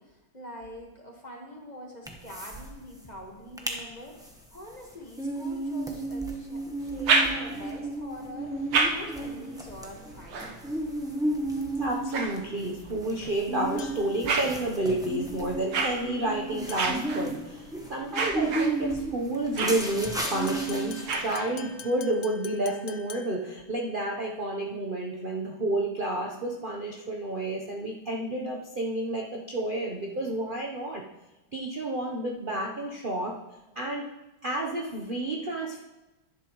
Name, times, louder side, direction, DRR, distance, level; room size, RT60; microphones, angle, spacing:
voice 1, 0.0-10.8, left 1 dB, 25° left, 0 dB, 1.3 m, -45 dB
sound 1, 2.0-2.7 2.9-3.0 3.4-3.8 4.2-21.3, right 2 dB, 5° right, 0.5 m, -33 dB
sound 2, 6.8-7.8 8.4-13.0 13.6-21.9, right 4 dB, 75° right, 1.9 m, -32 dB
voice 2, 11.8-31.0 31.5-33.4 33.8-34.0 34.4-35.8, right 1 dB, 50° right, -1 dB, 0.6 m, -30 dB
sound 3, 13.8-14.2 16.7-17.1 19.6-23.5, left 7 dB, 80° left, 0.7 m, -46 dB
11.0 x 11.0 x 3.1 m, 1.0 s
omnidirectional pair, 2.3 m